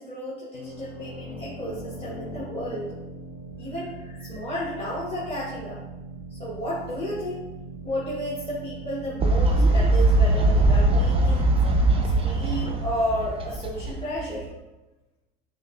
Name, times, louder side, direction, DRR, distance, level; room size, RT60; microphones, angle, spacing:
voice 1, 0.0-2.9 3.6-5.8 6.3-7.4 7.8-11.6 12.2-14.5, equal, 20° left, -7 dB, 1.0 m, -32 dB
sound 1, 0.5-12.0, right 2 dB, 45° left, 0.9 m, -40 dB
Fowl, 9.2-14.5, right 2 dB, 20° right, 0.5 m, -21 dB
6.1 x 2.1 x 2.4 m, 1.1 s
supercardioid pair, 95°, 31 cm